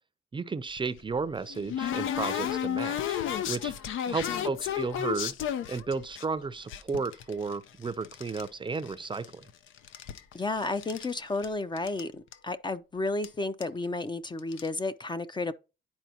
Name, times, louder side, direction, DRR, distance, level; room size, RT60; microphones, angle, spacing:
voice 1, 0.3-3.2 3.5-3.7 4.1-5.4 5.7-9.5, right 4 dB, 25° right, 0.5 m, -33 dB
sound 1, 0.8-6.2 6.7-8.5 8.7-9.5 9.8-11.1 11.4-11.5 11.8-12.0 12.3-12.4 13.2-13.3 13.6-13.8 14.4-14.7, left 10 dB, 80° left, 0.6 m, -33 dB
voice 2, 4.1-4.5 10.3-15.5, left 2 dB, 25° left, 0.5 m, -32 dB
10.5 x 4.2 x 2.8 m
cardioid pair, 90°, 20 cm